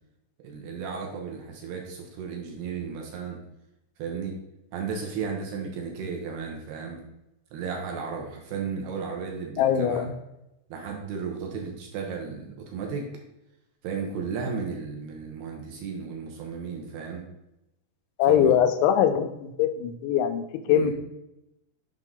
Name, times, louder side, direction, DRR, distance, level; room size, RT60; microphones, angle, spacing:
voice 1, 0.4-3.4 4.0-4.4 4.7-7.0 7.5-10.1 10.7-13.1 13.8-17.2 18.3-18.6 20.7-20.9, right 5 dB, 75° right, 1 dB, 2.8 m, -34 dB
voice 2, 9.6-10.1 18.2-20.9, left 9 dB, 85° left, 7 dB, 3.0 m, -22 dB
7.6 x 5.3 x 3.7 m, 0.89 s
omnidirectional pair, 5.3 m